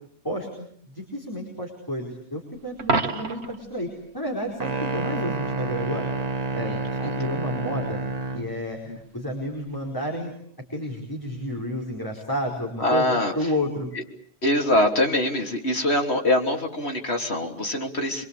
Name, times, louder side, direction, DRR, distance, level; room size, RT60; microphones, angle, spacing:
voice 1, 0.2-3.9 4.1-6.1 6.5-8.0 8.3-10.3 10.7-13.9, equal, 20° left, -1 dB, 4.7 m, -31 dB
Coin (dropping), 2.8-3.7 9.7-9.9, right 3 dB, 85° right, 1.7 m, -27 dB
sound 1, 4.6-8.5, right 2 dB, 40° right, 1.4 m, -29 dB
voice 2, 6.6-7.1 8.9-9.0 12.8-13.5 13.9-14.0 14.4-18.2, left 1 dB, 75° left, 2 dB, 3.4 m, -24 dB
25.0 x 24.0 x 8.4 m, 0.64 s
omnidirectional pair, 1.1 m